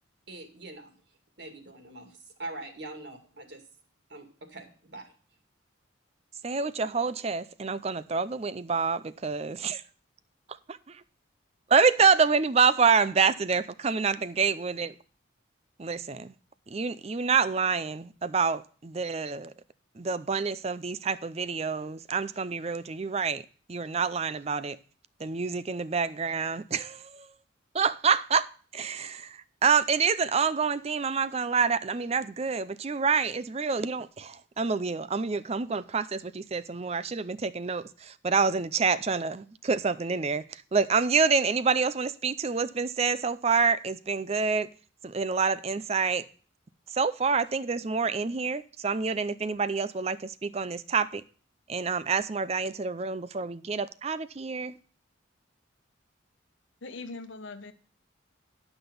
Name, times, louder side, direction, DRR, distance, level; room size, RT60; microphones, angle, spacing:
voice 1, 0.3-3.7 4.1-5.1, right 2 dB, 55° right, 2.1 m, -43 dB
voice 2, 6.4-9.8 10.5-11.0 11.7-14.9 15.8-16.3 16.7-19.5 20.0-23.4 23.7-24.8 25.2-27.3 27.7-44.7 45.0-46.3 46.9-51.2 51.7-54.8, right 5 dB, 30° right, 0.5 m, -27 dB
voice 3, 56.8-57.7, left 3 dB, 70° left, 1.0 m, -41 dB
11.5 x 6.0 x 5.1 m
head